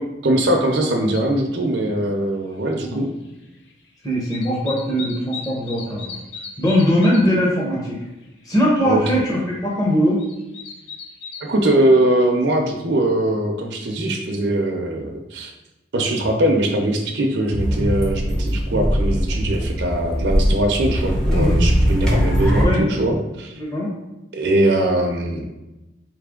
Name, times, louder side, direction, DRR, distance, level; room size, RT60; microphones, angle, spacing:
voice 1, 0.0-3.1 8.8-9.2 11.4-15.5 15.9-23.5 24.3-25.5, right 1 dB, 65° right, 2 dB, 0.6 m, -21 dB
sound 1, 1.1-1.2 2.7-2.8 3.0-3.9 4.1-7.5 7.8-7.9 8.1-8.5 8.9-9.0 9.9-11.6 12.2-12.3, left 5 dB, 65° left, 0.7 m, -37 dB
voice 2, 4.0-6.1 6.6-8.0 8.4-10.2 18.7-18.8 21.3-21.6 22.6-22.9 23.6-23.9, equal, 20° left, -5 dB, 1.0 m, -20 dB
sound 2, 17.5-22.7, equal, 5° left, 0.7 m, -20 dB
4.1 x 3.3 x 3.7 m, 1.0 s
head